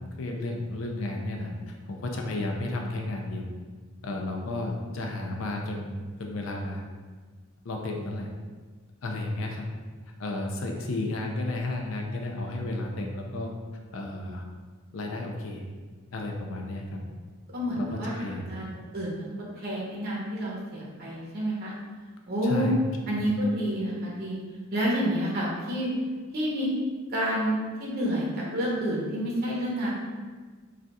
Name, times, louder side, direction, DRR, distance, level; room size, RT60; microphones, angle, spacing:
voice 1, 0.0-3.5 4.0-6.8 7.6-8.3 9.0-9.7 10.2-13.5 13.9-14.4 14.9-15.6 16.1-17.0 17.8-18.7 22.4-22.7 23.1-23.3, left 2 dB, 65° left, 2 dB, 0.4 m, -33 dB
voice 2, 17.5-19.2 19.6-21.7 22.3-22.8 23.1-24.4 24.7-25.9 26.3-26.7 27.1-28.3 28.5-29.9, equal, 45° right, -5 dB, 0.8 m, -29 dB
2.4 x 2.3 x 3.9 m, 1.4 s
head